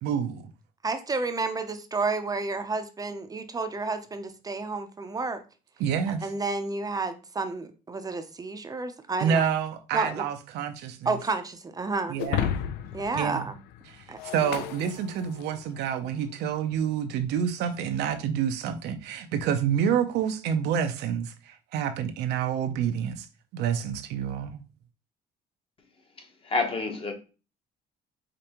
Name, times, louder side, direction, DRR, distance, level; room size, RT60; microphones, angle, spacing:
voice 1, 0.0-0.4 5.8-6.3 9.2-11.2 12.1-12.6 13.1-13.5 13.9-14.1 14.3-23.3 23.5-24.6, right 8 dB, 80° right, 0.6 m, -28 dB
voice 2, 0.8-5.4 6.2-9.4 9.9-10.2 11.1-12.2 12.9-13.6 14.1-14.2, right 3 dB, 20° right, 0.6 m, -30 dB
Shatter, 12.2-15.7, left 10 dB, 90° left, 0.4 m, -33 dB
voice 3, 26.2-27.1, left 3 dB, 30° left, 1.0 m, -29 dB
5.1 x 3.3 x 2.9 m
cardioid pair, 110°, 17 cm